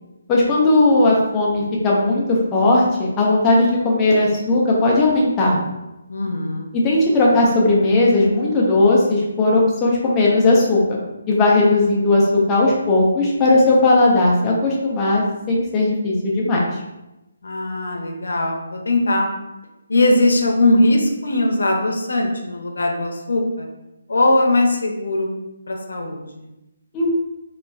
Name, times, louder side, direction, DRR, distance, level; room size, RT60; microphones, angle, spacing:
voice 1, 0.3-5.6 6.8-11.0 11.3-16.6 26.9-27.2, left 2 dB, 10° left, -5 dB, 0.3 m, -17 dB
voice 2, 6.1-6.7 17.4-18.6 18.9-19.3 19.9-23.7 24.1-25.3 25.7-26.4, left 2 dB, 90° left, 1 dB, 0.5 m, -19 dB
3.9 x 2.3 x 2.3 m, 0.97 s
hypercardioid pair, 180°, 0 cm